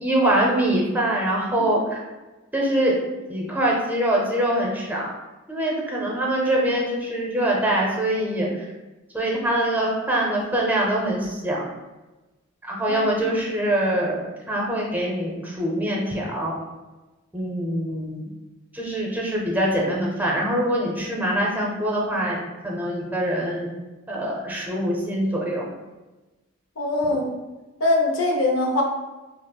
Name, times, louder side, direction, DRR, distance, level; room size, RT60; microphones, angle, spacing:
voice 1, 0.0-2.0 2.5-3.0 3.3-5.1 5.5-8.7 9.1-11.7 12.6-16.5 17.3-18.3 18.7-22.4 22.6-23.7 24.1-25.7, right 1 dB, 10° right, -3 dB, 0.6 m, -24 dB
voice 2, 12.9-13.4 26.8-27.3 27.8-28.8, left 2 dB, 70° left, 0 dB, 0.6 m, -23 dB
5.4 x 2.0 x 2.3 m, 1.1 s
head